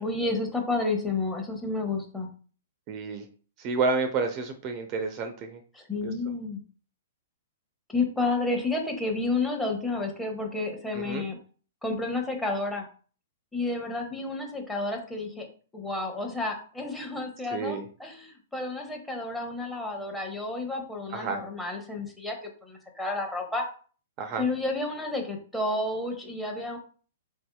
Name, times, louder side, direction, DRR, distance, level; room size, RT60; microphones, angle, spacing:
voice 1, 0.0-2.3 5.7-6.6 7.9-11.4 11.8-12.8 13.5-15.5 15.7-23.7 24.4-26.8, left 2 dB, 5° left, 1 dB, 0.8 m, -31 dB
voice 2, 2.9-3.2 3.6-5.6 6.0-6.1 10.9-11.2 17.5-17.9 21.1-21.4 24.2-24.4, right 4 dB, 35° right, 7 dB, 0.5 m, -30 dB
4.2 x 2.7 x 2.3 m, 0.40 s
hypercardioid pair, 120°, 0 cm